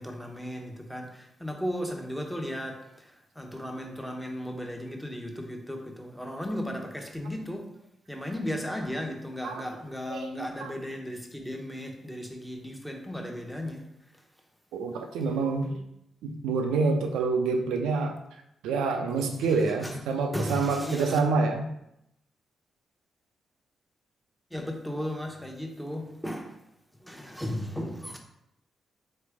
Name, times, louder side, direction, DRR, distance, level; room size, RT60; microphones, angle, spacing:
voice 1, 0.0-7.7 8.1-13.9 19.8-20.0 20.3-21.2 24.5-26.6 27.0-28.2, equal, ahead, 0.9 m, -35 dB
voice 2, 10.1-10.7 14.7-15.8 16.2-18.2 18.6-21.7, right 4 dB, 85° right, 0.5 m, -27 dB
3.9 x 3.2 x 3.5 m
supercardioid pair, 50°, 0 cm